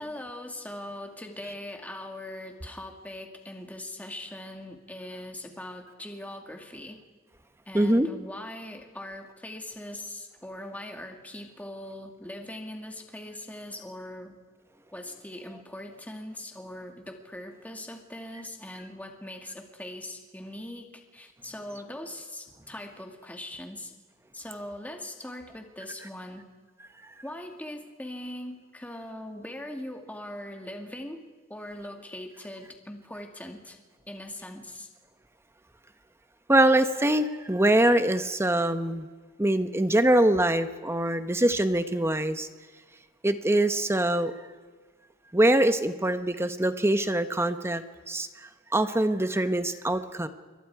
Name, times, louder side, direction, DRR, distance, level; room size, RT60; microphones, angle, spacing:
voice 1, 0.0-7.0 7.7-14.4 14.9-23.9 24.3-26.5 27.2-31.2 31.5-33.8 34.1-34.9, left 1 dB, 10° left, 3 dB, 2.2 m, -41 dB
voice 2, 7.7-8.1 36.5-39.1 39.4-42.5 43.2-44.3 45.3-48.3 48.7-50.3, right 1 dB, 10° right, 10 dB, 1.0 m, -23 dB
27.0 x 23.0 x 4.8 m, 1.4 s
head